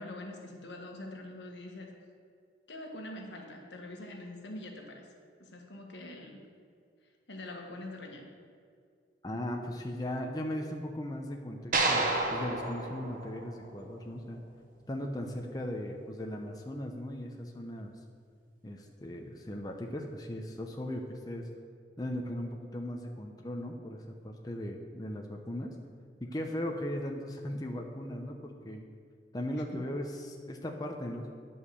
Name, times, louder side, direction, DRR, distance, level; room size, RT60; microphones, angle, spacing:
voice 1, 0.0-1.9 2.7-5.1 5.4-6.5 7.3-8.3 29.6-29.8, left 1 dB, 80° left, 2 dB, 1.4 m, -44 dB
voice 2, 9.2-14.4 14.9-17.9 18.6-21.5 22.0-25.7 26.2-28.8 29.3-31.3, left 1 dB, 20° left, 2 dB, 0.7 m, -38 dB
sound 1, 11.7-14.1, right 2 dB, 50° right, 1.1 m, -31 dB
9.9 x 5.4 x 6.9 m, 2.2 s
head